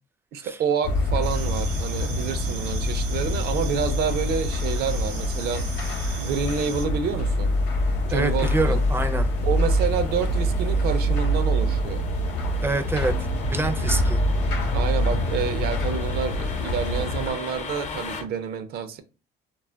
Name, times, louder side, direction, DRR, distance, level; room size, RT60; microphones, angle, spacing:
voice 1, 0.3-5.6 6.2-7.5 8.1-8.8 9.4-12.1 14.7-19.0, right 7 dB, 70° right, 0.5 m, -28 dB
sound 1, 0.8-17.3, equal, 90° left, 0.7 m, -25 dB
sound 2, 1.2-6.9, right 5 dB, 85° right, 0.9 m, -39 dB
sound 3, 4.0-18.2, left 4 dB, 45° left, 0.5 m, -40 dB
voice 2, 8.1-9.3 12.6-14.2, right 2 dB, 15° right, 0.4 m, -27 dB
2.3 x 2.1 x 3.3 m
cardioid pair, 110°, 17 cm